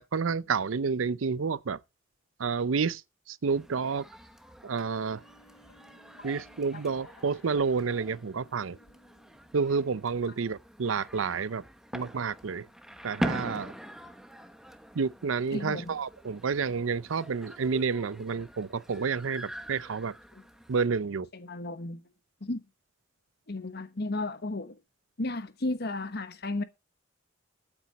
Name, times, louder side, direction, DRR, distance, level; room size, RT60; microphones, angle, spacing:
voice 1, 0.0-1.8 2.4-3.0 3.3-4.1 4.6-5.2 6.2-8.8 9.5-11.6 11.9-12.7 13.0-13.7 14.9-20.1 20.7-21.3, right 5 dB, 90° right, 0.6 m, -29 dB
sound 1, 3.5-20.9, equal, 5° right, 1.0 m, -43 dB
Wind instrument woodwind instrument, 4.9-9.6, equal, 80° left, 5.3 m, -61 dB
voice 2, 15.5-15.9 21.3-22.0 22.4-22.6 23.5-24.8 25.2-26.6, left 2 dB, 55° left, 1.2 m, -33 dB
13.5 x 8.9 x 4.2 m
head